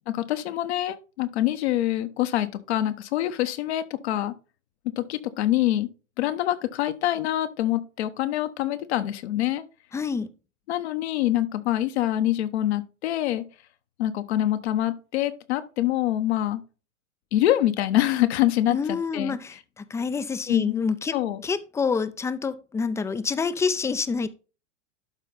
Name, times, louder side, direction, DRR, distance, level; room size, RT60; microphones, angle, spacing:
voice 1, 0.1-4.3 5.0-5.9 6.2-9.6 10.7-13.4 14.0-16.6 17.3-19.4 20.5-20.8 21.1-21.4, left 13 dB, 60° left, 1.1 m, -25 dB
voice 2, 9.9-10.3 18.7-21.1 21.4-24.3, left 5 dB, 10° left, 0.5 m, -27 dB
12.0 x 4.2 x 3.9 m
hypercardioid pair, 100°, 36 cm